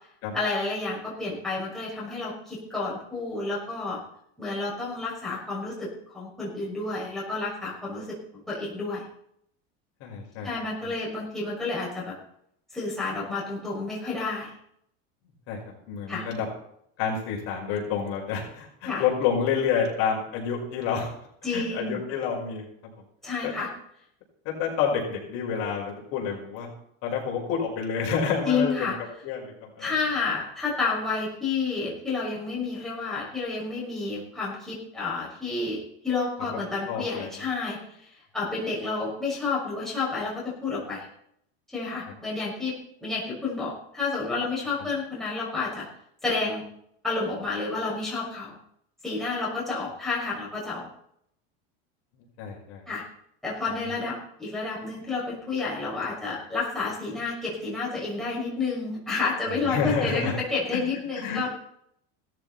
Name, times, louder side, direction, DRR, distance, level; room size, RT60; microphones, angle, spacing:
voice 1, 0.3-4.0 4.4-9.1 10.4-12.2 12.7-14.5 16.1-16.2 18.8-19.0 21.4-22.0 23.2-23.7 28.4-29.0 29.8-35.8 36.0-38.1 38.3-41.1 41.7-45.9 46.2-46.7 47.0-48.6 49.0-50.9 52.9-53.0 53.4-61.5, left 4 dB, ahead, -7 dB, 6.1 m, -30 dB
voice 2, 10.0-10.5 10.8-10.9 15.5-15.6 15.9-16.5 17.0-21.1 21.5-22.6 23.4-23.5 24.5-26.7 27.0-28.9 29.2-29.9 36.5-36.6 36.9-37.5 52.4-52.8 53.8-54.0 59.5-60.4 60.7-60.8 61.1-61.5, left 6 dB, 50° left, -1 dB, 5.4 m, -29 dB
18.0 x 14.0 x 4.3 m, 0.71 s
cardioid pair, 170°, 31 cm